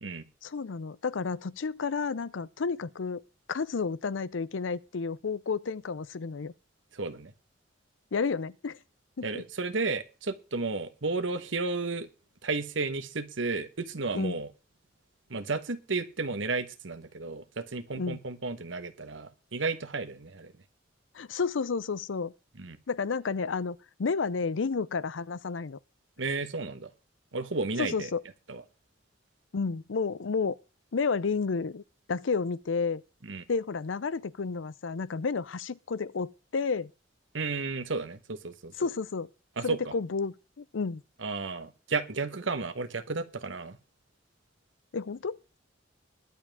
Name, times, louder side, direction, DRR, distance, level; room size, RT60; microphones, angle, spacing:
voice 1, 0.4-3.2 3.5-6.5 8.1-8.8 9.2-9.3 14.1-14.3 18.0-18.2 21.1-22.3 22.9-25.8 27.8-28.2 29.5-30.6 30.9-31.8 32.1-33.0 33.5-36.9 38.8-39.3 39.6-41.0 44.9-45.4, left 5 dB, 85° left, 0.6 m, -31 dB
voice 2, 6.9-7.3 9.2-12.1 12.4-14.5 15.3-20.5 22.6-22.8 26.2-26.9 27.3-28.1 28.5-28.6 33.2-33.4 37.3-38.9 39.6-39.9 41.2-43.8, right 3 dB, 80° right, 1.3 m, -33 dB
21.5 x 7.4 x 3.6 m
head